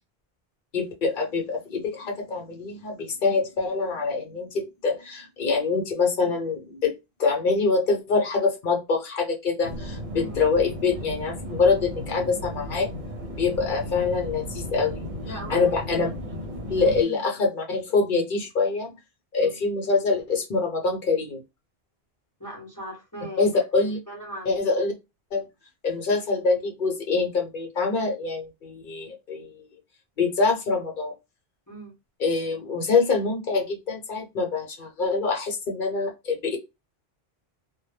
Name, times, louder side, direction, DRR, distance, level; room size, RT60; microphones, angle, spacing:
voice 1, 0.7-6.9 7.2-12.9 13.4-15.1 15.5-16.1 16.7-18.9 19.3-21.4 23.4-24.0 24.5-24.9 25.3-25.4 25.8-29.5 30.2-31.1 32.2-36.6, left 4 dB, 55° left, 2 dB, 0.9 m, -25 dB
sound 1, 9.6-17.0, equal, 50° right, 0.8 m, -35 dB
voice 2, 15.2-15.7 16.0-16.1 16.8-17.2 19.4-19.6 22.4-23.6 24.1-24.7 31.7-31.9, right 1 dB, 20° left, -2 dB, 0.8 m, -39 dB
2.2 x 2.1 x 3.1 m, 0.23 s
omnidirectional pair, 1.0 m